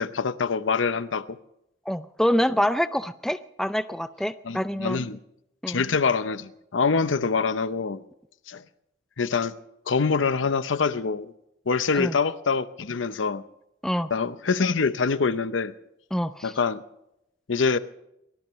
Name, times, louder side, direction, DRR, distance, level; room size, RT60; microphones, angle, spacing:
voice 1, 0.0-1.4 4.4-5.2 5.7-8.0 8.5-8.6 9.2-9.5 9.9-11.3 11.7-13.4 14.1-15.7 16.4-16.8 17.5-17.8, left 5 dB, 80° left, 13 dB, 0.7 m, -25 dB
voice 2, 1.9-5.0 5.6-5.8 11.9-12.1 13.8-14.1 16.1-16.5, equal, 5° left, 11 dB, 0.5 m, -26 dB
23.5 x 18.0 x 3.2 m, 0.82 s
head